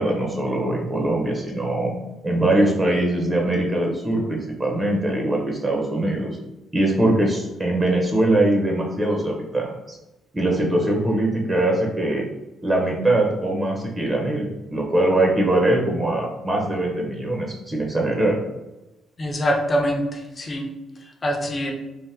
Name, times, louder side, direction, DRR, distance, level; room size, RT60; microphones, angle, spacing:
voice 1, 0.0-1.9 2.2-6.4 6.7-10.0 10.3-12.2 12.6-18.4, right 1 dB, 25° right, 0 dB, 0.6 m, -22 dB
voice 2, 19.2-20.7 21.2-21.7, equal, 35° left, 2 dB, 0.6 m, -24 dB
3.3 x 2.0 x 2.7 m, 0.99 s
cardioid pair, 90°, 0 cm